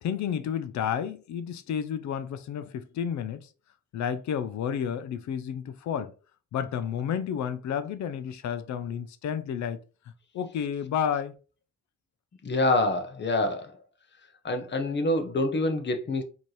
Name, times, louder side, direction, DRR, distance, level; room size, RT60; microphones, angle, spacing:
voice 1, 0.0-3.5 3.9-6.1 6.5-9.8 10.3-11.3, left 8 dB, 65° left, 0.6 m, -31 dB
voice 2, 12.4-13.8 14.4-16.2, left 2 dB, 35° left, 0.9 m, -26 dB
4.3 x 2.9 x 3.2 m
cardioid pair, 90°, 30 cm